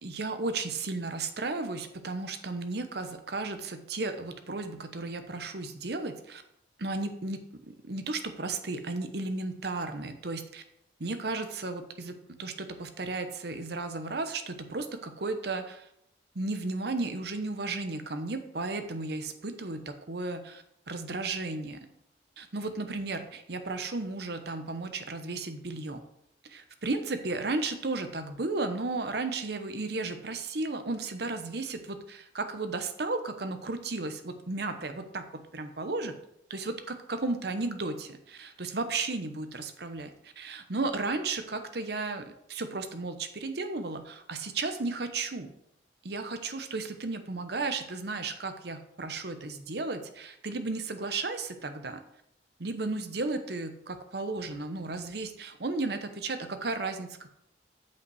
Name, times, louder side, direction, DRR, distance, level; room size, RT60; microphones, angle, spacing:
voice 1, 0.0-6.4 6.8-10.6 11.0-15.9 16.3-21.8 22.4-26.0 26.5-36.1 36.5-45.5 46.0-52.0 52.6-57.3, right 3 dB, 60° right, 8 dB, 0.9 m, -34 dB
8.3 x 5.5 x 4.8 m, 0.76 s
head